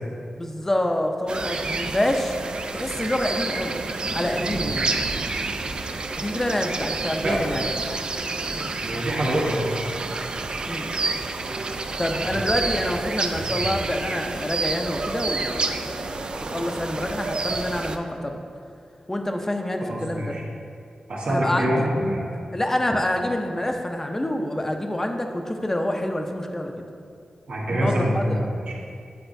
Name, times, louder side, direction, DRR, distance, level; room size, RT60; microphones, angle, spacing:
voice 1, 0.4-2.4 2.7-3.8 4.1-4.9 6.2-7.6 8.5-8.7 10.7-10.9 12.0-18.4 19.1-20.4 21.3-21.7 22.5-26.9 27.7-28.5, left 1 dB, 20° left, 4 dB, 0.5 m, -27 dB
sound 1, 1.3-18.0, right 3 dB, 50° right, 0.3 m, -29 dB
voice 2, 8.8-9.7 12.2-12.3 19.8-20.4 21.1-22.2 27.5-28.7, equal, 65° right, -4 dB, 1.3 m, -25 dB
8.0 x 4.9 x 2.6 m, 2.4 s
cardioid pair, 70°, 2 cm